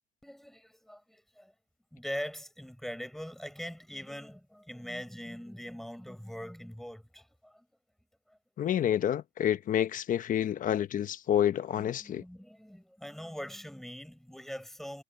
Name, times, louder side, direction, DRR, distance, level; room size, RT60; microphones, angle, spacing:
voice 1, 0.2-1.5 1.9-7.7 8.3-8.4 11.8-15.0, equal, ahead, 6.9 m, -42 dB
voice 2, 8.6-12.2, left 10 dB, 50° left, 1.1 m, -28 dB
cardioid pair, 110°, 17 cm